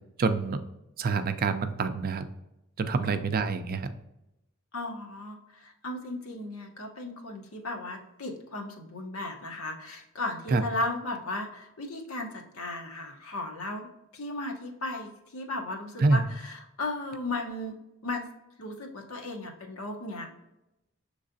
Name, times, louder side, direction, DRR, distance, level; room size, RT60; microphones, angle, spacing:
voice 1, 0.2-0.6 1.0-2.3 2.8-3.9 10.5-10.6 16.0-16.2, right 4 dB, 45° right, 9 dB, 0.4 m, -26 dB
voice 2, 4.7-13.9 14.1-17.7 18.0-18.3 18.6-20.3, left 2 dB, 85° left, 2 dB, 0.9 m, -36 dB
6.4 x 3.2 x 2.6 m, 0.89 s
head